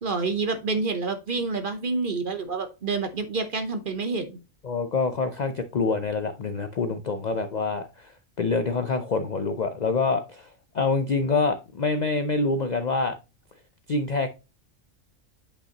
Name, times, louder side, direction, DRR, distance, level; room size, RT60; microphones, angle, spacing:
voice 1, 0.0-4.4, right 4 dB, 45° right, 0.9 m, -28 dB
voice 2, 4.6-8.1 8.4-10.5 10.7-13.1 13.9-14.3, left 3 dB, 60° left, 0.4 m, -26 dB
8.5 x 5.4 x 2.9 m
omnidirectional pair, 1.4 m